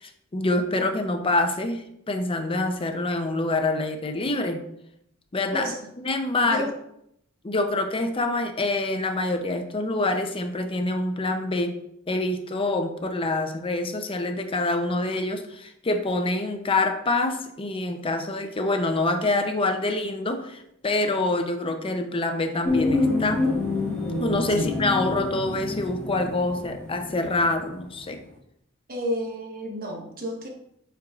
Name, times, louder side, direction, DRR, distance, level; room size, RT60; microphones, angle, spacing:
voice 1, 0.0-4.6 5.3-5.7 6.0-6.6 7.4-11.8 12.1-23.5 24.2-28.2, left 2 dB, 25° left, 6 dB, 0.6 m, -26 dB
sound 1, 22.6-28.0 28.3-28.4, left 2 dB, 5° left, 1.3 m, -27 dB
voice 2, 28.9-30.5, equal, 45° right, 1 dB, 1.2 m, -31 dB
8.7 x 4.6 x 2.4 m, 0.76 s
head